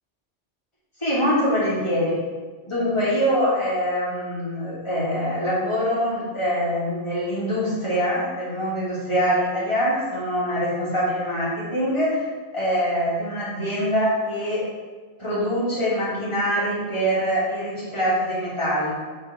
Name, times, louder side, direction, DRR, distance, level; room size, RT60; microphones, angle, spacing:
voice 1, 1.0-2.2 2.7-12.3 12.5-14.6 15.2-18.9, equal, 25° left, -8 dB, 2.7 m, -24 dB
6.4 x 5.3 x 5.2 m, 1.4 s
omnidirectional pair, 1.2 m